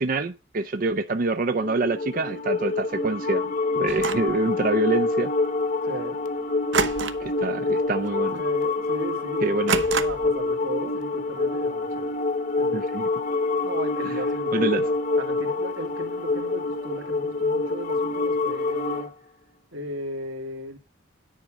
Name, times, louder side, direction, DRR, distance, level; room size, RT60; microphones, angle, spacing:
voice 1, 0.0-3.5 3.7-5.3 7.2-8.4 9.4-9.8 12.7-13.1 14.5-14.8, right 2 dB, 45° right, 0.5 m, -26 dB
sound 1, 1.5-19.1, left 3 dB, 40° left, 0.9 m, -26 dB
sound 2, 3.9-4.4 6.7-7.4 7.7-8.0 8.4-8.5 9.7-10.4, right 5 dB, 65° right, 1.0 m, -27 dB
voice 2, 5.8-6.2 8.3-12.1 12.6-13.0 13.6-19.1 19.7-20.8, right 1 dB, 85° right, 2.3 m, -37 dB
10.0 x 5.2 x 7.4 m
head